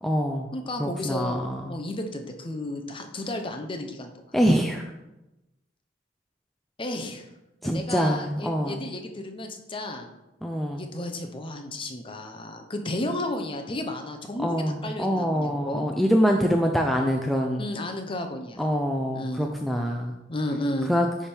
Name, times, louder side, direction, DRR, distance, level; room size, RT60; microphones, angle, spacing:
voice 1, 0.0-0.5 0.8-1.7 4.3-4.9 7.6-8.8 10.4-10.8 14.4-17.7 18.6-20.1 20.9-21.1, equal, ahead, 1 dB, 0.3 m, -25 dB
voice 2, 0.5-4.1 6.8-7.3 7.6-10.1 10.7-15.9 17.6-18.6 19.1-19.5 20.3-20.9, left 1 dB, 25° left, 5 dB, 0.7 m, -33 dB
9.9 x 3.4 x 4.4 m, 0.99 s
head